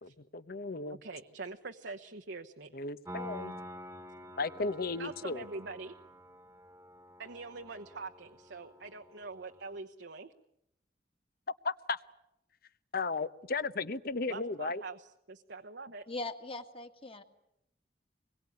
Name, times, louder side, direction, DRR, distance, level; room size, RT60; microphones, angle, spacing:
voice 1, 0.0-1.0 2.7-3.5 4.4-5.4 11.6-12.0 12.9-14.8, left 3 dB, 60° left, 14 dB, 1.0 m, -35 dB
voice 2, 1.0-2.7 5.0-5.9 7.2-10.3 14.3-16.0, right 3 dB, 80° right, 5 dB, 1.1 m, -44 dB
Piano, 3.1-9.8, equal, 15° right, 1.4 m, -48 dB
voice 3, 16.1-17.2, left 2 dB, 30° left, 6 dB, 2.1 m, -40 dB
25.5 x 22.0 x 9.8 m, 0.80 s
head